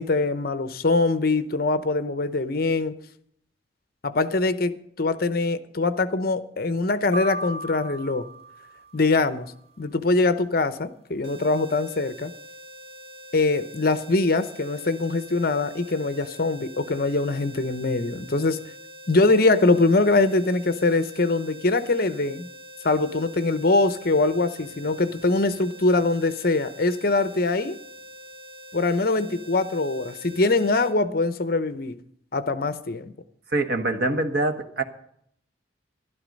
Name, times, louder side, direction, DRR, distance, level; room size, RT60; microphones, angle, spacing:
voice 1, 0.0-2.9 4.0-8.3 8.9-9.5 9.8-12.3 13.3-18.6 19.1-22.5 22.8-27.8 28.7-32.0 32.3-33.1, left 3 dB, 50° left, 0.7 m, -23 dB
sound 1, 7.1-9.3, right 1 dB, 30° right, 1.0 m, -35 dB
sound 2, 11.2-31.0, equal, 75° right, 1.6 m, -45 dB
voice 2, 33.5-34.8, right 2 dB, 55° right, 1.3 m, -24 dB
12.5 x 12.0 x 5.2 m
head